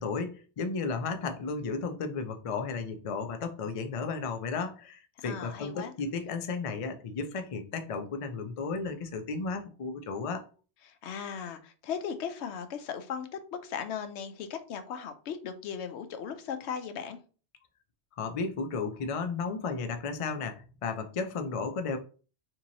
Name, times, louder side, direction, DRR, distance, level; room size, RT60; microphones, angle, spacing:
voice 1, 0.0-10.4 18.2-22.0, left 4 dB, 55° left, 0.3 m, -34 dB
voice 2, 5.2-5.9 10.8-17.2, left 7 dB, 80° left, 0.9 m, -37 dB
2.9 x 2.7 x 3.9 m
omnidirectional pair, 1.1 m